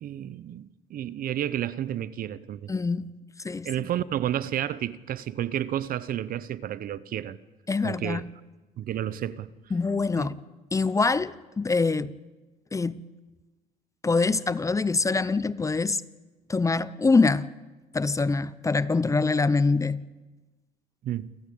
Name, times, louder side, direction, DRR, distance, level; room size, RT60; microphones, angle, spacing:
voice 1, 0.0-2.7 3.6-7.4 7.8-8.2 8.8-9.5 10.2-10.3 21.0-21.3, right 11 dB, 60° right, 0.9 m, -31 dB
voice 2, 2.7-3.1 3.4-3.7 7.7-8.2 9.7-10.4 10.7-12.1 12.7-13.0 14.0-16.0 16.5-17.5 17.9-20.0, left 4 dB, 20° left, 0.7 m, -24 dB
28.5 x 13.5 x 8.7 m
cardioid pair, 110°, 17 cm